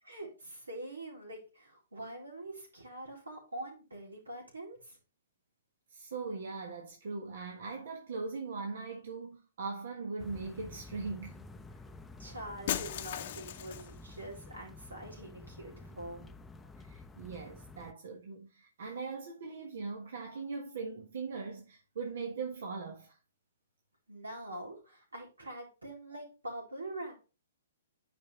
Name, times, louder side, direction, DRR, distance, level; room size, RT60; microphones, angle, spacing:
voice 1, 0.0-5.0 12.2-16.3 24.1-27.1, right 1 dB, 85° right, 3.8 m, -44 dB
voice 2, 5.9-11.4 16.8-23.2, right 4 dB, 65° right, 1.4 m, -40 dB
sound 1, 10.2-17.9, left 2 dB, 10° left, 0.6 m, -50 dB
Shatter, 12.7-14.0, left 12 dB, 50° left, 0.7 m, -37 dB
9.5 x 5.4 x 3.2 m
figure-of-eight pair, 125°, 0 cm